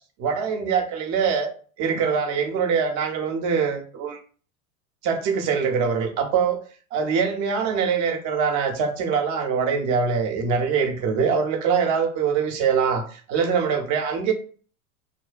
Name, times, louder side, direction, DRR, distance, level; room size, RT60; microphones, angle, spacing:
voice 1, 0.2-1.5 1.8-4.2 5.0-6.6 6.9-14.3, right 6 dB, 45° right, 4 dB, 0.6 m, -23 dB
2.8 x 2.1 x 2.3 m, 0.41 s
hypercardioid pair, 100°, 43 cm